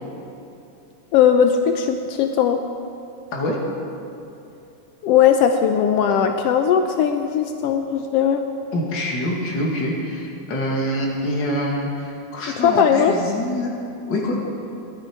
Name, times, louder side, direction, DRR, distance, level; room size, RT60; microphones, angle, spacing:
voice 1, 1.1-2.6 5.0-8.4 12.5-13.2, left 8 dB, 80° left, 6 dB, 1.4 m, -18 dB
voice 2, 8.7-13.7 14.1-14.4, left 1 dB, 40° left, -2 dB, 2.5 m, -25 dB
18.5 x 12.0 x 4.7 m, 2.8 s
omnidirectional pair, 3.5 m